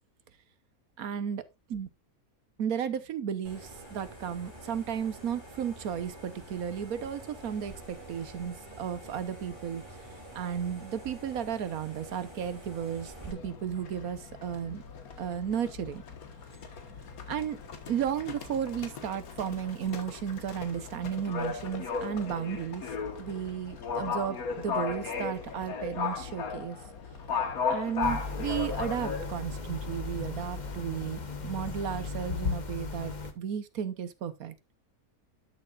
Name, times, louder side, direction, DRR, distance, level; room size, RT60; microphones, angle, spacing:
voice 1, 1.0-1.4 1.7-1.9 2.6-9.8 10.3-14.8 15.2-16.0 17.3-17.6 17.9-22.9 23.2-26.8 27.7-34.5, right 8 dB, 75° right, 1.4 m, -34 dB
sound 1, 3.4-13.3, right 1 dB, 15° right, 2.9 m, -47 dB
Livestock farm animals working animals, 13.2-32.5, left 5 dB, 75° left, 1.9 m, -37 dB
sound 2, 28.0-33.3, left 3 dB, 35° left, 1.1 m, -38 dB
12.0 x 6.7 x 2.4 m
omnidirectional pair, 1.6 m